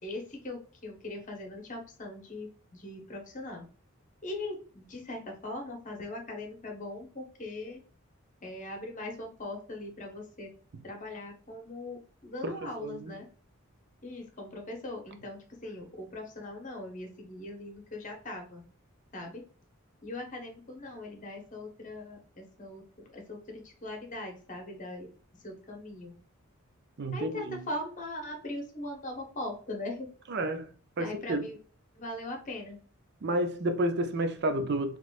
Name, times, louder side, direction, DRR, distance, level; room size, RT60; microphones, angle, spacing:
voice 1, 0.0-3.6 4.2-7.8 8.4-10.5 10.8-13.3 14.0-18.6 19.1-19.5 20.0-22.8 23.1-25.1 25.4-26.1 27.1-30.1 31.0-31.6 31.9-32.8, left 1 dB, 35° left, 1.1 m, -40 dB
voice 2, 12.4-13.1 27.0-27.6 30.3-30.7 31.0-31.5 33.2-35.0, right 1 dB, 50° right, 0.5 m, -31 dB
4.0 x 3.1 x 2.4 m
head